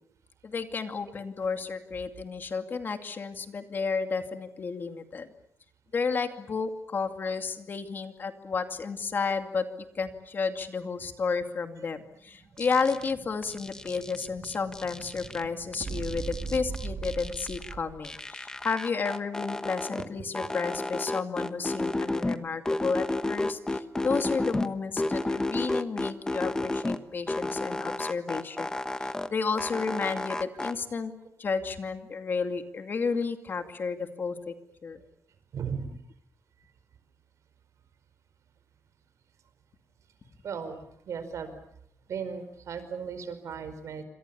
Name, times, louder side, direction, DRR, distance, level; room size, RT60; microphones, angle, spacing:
voice 1, 0.4-5.3 5.9-9.6 9.9-28.7 29.0-31.1 31.4-34.5 34.8-35.0, left 5 dB, 40° left, 7 dB, 2.4 m, -32 dB
Explosion, 12.1-18.2, right 4 dB, 40° right, 2.0 m, -40 dB
sound 1, 12.6-13.1 13.4-15.4 15.7-17.7 18.0-20.1 20.3-22.4 22.7-24.7 25.0-27.0 27.3-29.3 29.6-30.7, left 2 dB, 15° left, 1.1 m, -32 dB
voice 2, 35.5-35.9 40.4-41.5 42.1-44.0, right 6 dB, 85° right, 11 dB, 4.9 m, -36 dB
28.0 x 26.0 x 7.0 m, 0.72 s
wide cardioid pair, 175°, 5 cm